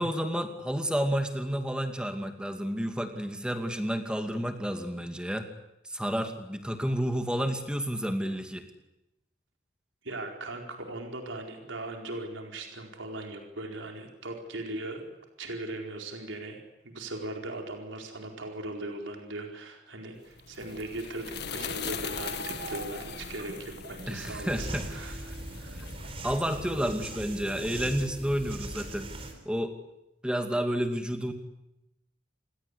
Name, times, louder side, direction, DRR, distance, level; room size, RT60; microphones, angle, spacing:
voice 1, 0.0-5.5 5.8-8.7 24.1-25.2 25.7-25.8 26.2-29.1 29.5-29.8 30.2-31.3, equal, 5° right, 6 dB, 2.4 m, -30 dB
voice 2, 10.0-15.0 15.4-25.7, right 2 dB, 85° right, 2 dB, 4.6 m, -39 dB
sound 1, 20.3-26.9, left 6 dB, 60° left, 1.9 m, -40 dB
sound 2, 20.6-28.0, right 3 dB, 55° right, 2.5 m, -47 dB
sound 3, 24.2-29.3, right 1 dB, 30° right, 4.1 m, -40 dB
28.5 x 21.5 x 8.4 m, 0.89 s
head